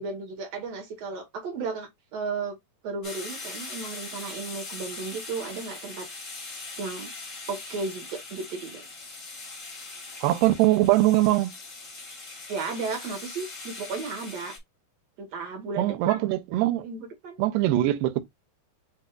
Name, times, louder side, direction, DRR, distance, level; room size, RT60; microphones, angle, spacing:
voice 1, 0.0-2.6 2.8-6.1 6.8-7.1 7.5-8.8 12.5-14.5 15.2-16.2 16.8-17.4, right 4 dB, 55° right, 2.1 m, -34 dB
sound 1, 3.0-14.6, left 3 dB, 75° left, 0.7 m, -41 dB
voice 2, 10.2-11.5 15.8-16.9 17.4-18.2, right 16 dB, 80° right, 2.2 m, -22 dB
7.5 x 2.6 x 2.3 m
omnidirectional pair, 4.2 m